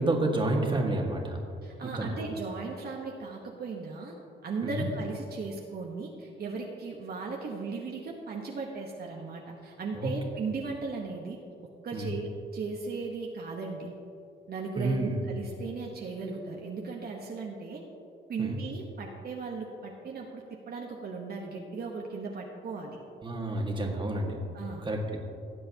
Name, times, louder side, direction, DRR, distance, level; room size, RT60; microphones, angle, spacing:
voice 1, 0.0-1.4 1.8-2.2 4.6-4.9 9.9-10.1 11.9-12.1 14.8-15.2 18.4-18.6 23.2-24.4 24.8-25.2, right 2 dB, 25° right, 0 dB, 1.8 m, -29 dB
voice 2, 1.6-4.1 4.4-11.4 11.8-13.9 14.5-17.8 18.3-23.0 24.5-24.9, right 4 dB, 50° right, -1 dB, 1.2 m, -37 dB
18.5 x 7.7 x 2.9 m, 2.6 s
cardioid pair, 90°, 20 cm